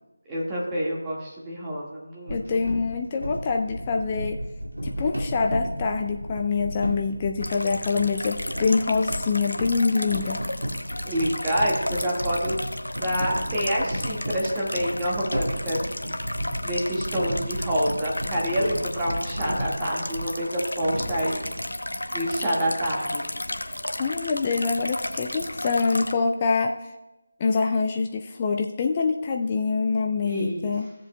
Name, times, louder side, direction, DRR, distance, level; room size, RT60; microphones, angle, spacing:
voice 1, 0.3-2.4 11.0-12.6 13.0-15.8 16.6-21.4 22.1-23.2 30.2-30.7, equal, 10° right, -7 dB, 1.6 m, -27 dB
voice 2, 2.3-4.4 4.8-10.4 24.0-26.8 27.4-30.9, left 4 dB, 20° left, 3 dB, 0.4 m, -25 dB
sound 1, 2.3-20.4 20.8-21.7, equal, 80° right, 2.2 m, -34 dB
sound 2, 7.4-26.1, left 1 dB, 70° left, 0.8 m, -33 dB
15.5 x 7.5 x 2.2 m, 1.0 s
figure-of-eight pair, 160°, 0 cm